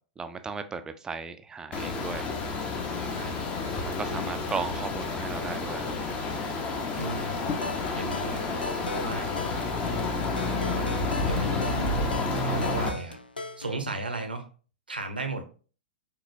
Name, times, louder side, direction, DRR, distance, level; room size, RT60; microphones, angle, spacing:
voice 1, 0.2-2.3 3.7-5.9, right 5 dB, 15° right, 9 dB, 0.4 m, -36 dB
sound 1, 1.7-12.9, left 3 dB, 25° left, 0.7 m, -30 dB
voice 2, 3.1-3.4 4.0-4.4 6.9-7.4 7.9-9.4 9.9-10.3 10.7-11.9 12.3-13.2 13.6-14.5 14.9-15.4, right 2 dB, 80° right, 6 dB, 0.8 m, -36 dB
sound 2, 7.4-13.7, left 2 dB, 85° left, 0.4 m, -39 dB
4.8 x 3.0 x 2.6 m, 0.38 s
figure-of-eight pair, 105°, 5 cm